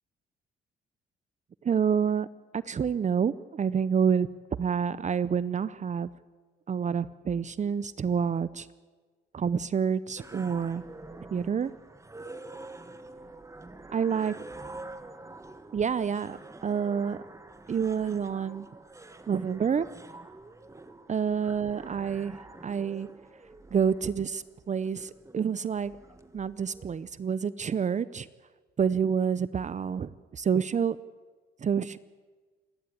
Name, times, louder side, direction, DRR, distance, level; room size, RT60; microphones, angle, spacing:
voice 1, 1.6-2.3 2.5-4.3 4.6-6.1 6.7-8.7 9.3-10.8 11.3-11.7 13.9-14.3 15.7-17.2 17.7-18.7 19.3-19.9 21.1-22.4 22.6-23.1 23.7-25.9 26.3-28.3 28.8-31.0 31.6-32.0, right 7 dB, 35° right, 17 dB, 0.7 m, -28 dB
sound 1, 10.2-27.1, right 2 dB, 15° right, 1.4 m, -47 dB
28.0 x 12.0 x 8.5 m, 1.4 s
cardioid pair, 90°, 20 cm